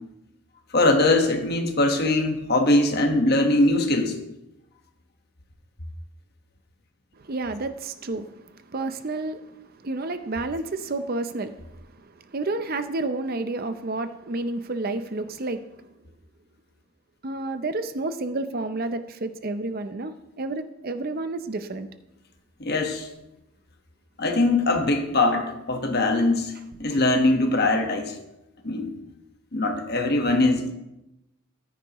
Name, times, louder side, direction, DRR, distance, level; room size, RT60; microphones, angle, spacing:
voice 1, 0.7-4.1 22.6-23.1 24.2-26.5 26.8-28.1 28.6-28.9 29.5-30.7, left 2 dB, 45° left, 4 dB, 1.3 m, -21 dB
voice 2, 7.2-11.6 11.9-15.7 17.2-21.9, right 2 dB, 40° right, 10 dB, 0.6 m, -30 dB
14.0 x 9.9 x 3.0 m, 0.92 s
head